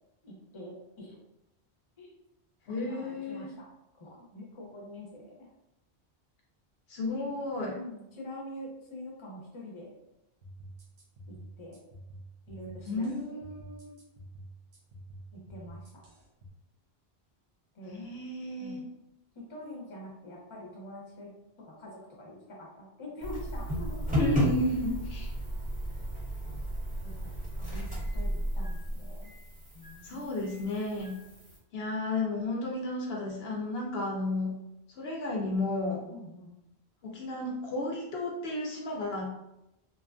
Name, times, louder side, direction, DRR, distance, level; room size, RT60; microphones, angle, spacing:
voice 1, 0.2-1.2 2.0-2.2 2.7-3.7 4.0-5.5 7.7-9.9 11.3-11.8 12.5-13.4 15.3-15.9 17.7-18.0 18.6-18.9 19.3-21.3 21.6-24.1 27.0-27.3 27.6-29.3 29.7-30.3 36.1-36.6, left 1 dB, 30° left, -3 dB, 0.7 m, -45 dB
voice 2, 2.7-3.5 6.9-7.8 12.9-14.0 17.9-18.9 24.1-25.3 30.0-31.2 31.7-34.5 35.0-36.0 37.0-39.3, left 2 dB, 75° left, -1 dB, 0.8 m, -32 dB
sound 1, 10.4-16.5, right 1 dB, 80° right, 1.0 m, -49 dB
sound 2, 23.2-31.6, equal, 10° right, 0.6 m, -34 dB
2.8 x 2.3 x 2.4 m, 0.88 s
omnidirectional pair, 1.1 m